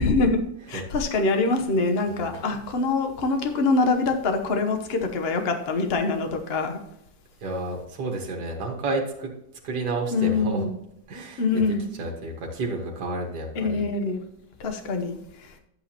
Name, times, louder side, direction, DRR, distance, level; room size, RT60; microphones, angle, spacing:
voice 1, 0.0-6.8 10.1-10.7 11.4-11.8 13.6-14.2 14.6-15.5, left 3 dB, 40° left, 5 dB, 0.9 m, -24 dB
voice 2, 7.4-9.3 9.6-10.7 11.1-13.8, right 2 dB, 55° right, 0 dB, 2.1 m, -31 dB
10.5 x 8.3 x 2.9 m, 0.80 s
omnidirectional pair, 2.1 m